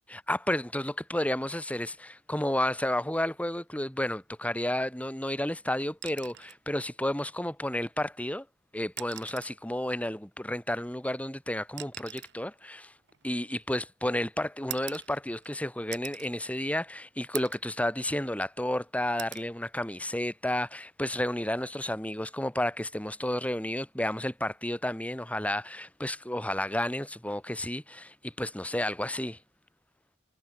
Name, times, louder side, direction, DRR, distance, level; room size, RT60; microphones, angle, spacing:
voice 1, 0.1-8.5 8.7-12.9 13.2-29.4, left 1 dB, 5° left, 2.7 m, -31 dB
sound 1, 5.9-6.6 8.1-8.2 8.8-9.6 10.8-13.9 14.7-15.5 15.9-16.3 16.8-16.9 17.3-17.7 18.2-18.8 19.2-19.5 21.0-21.2, right 14 dB, 65° right, 2.4 m, -44 dB
head